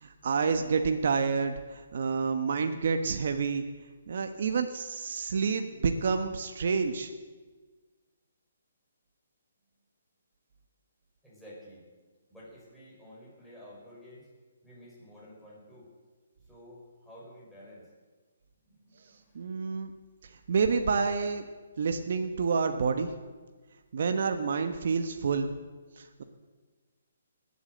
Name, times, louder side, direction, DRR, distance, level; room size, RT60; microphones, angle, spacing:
voice 1, 0.0-3.6 4.1-7.1 19.3-19.9 20.5-21.4 21.8-23.1 23.9-25.5 26.0-26.2, right 5 dB, 60° right, 6 dB, 1.2 m, -28 dB
voice 2, 11.2-11.8 12.3-14.3 14.6-15.9 16.4-17.9 18.6-19.8, equal, ahead, -8 dB, 5.0 m, -51 dB
20.0 x 8.5 x 7.8 m, 1.4 s
hypercardioid pair, 155°, 0 cm